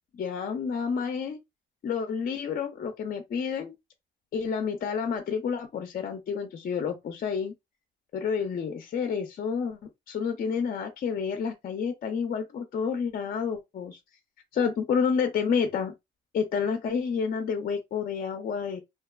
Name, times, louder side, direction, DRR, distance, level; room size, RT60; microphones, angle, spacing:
voice 1, 0.1-1.4 1.8-3.7 4.3-7.5 8.1-14.0 14.5-15.9 16.3-18.8, left 6 dB, 45° left, 0.5 m, -29 dB
2.7 x 2.2 x 2.2 m
cardioid pair, 90°, 20 cm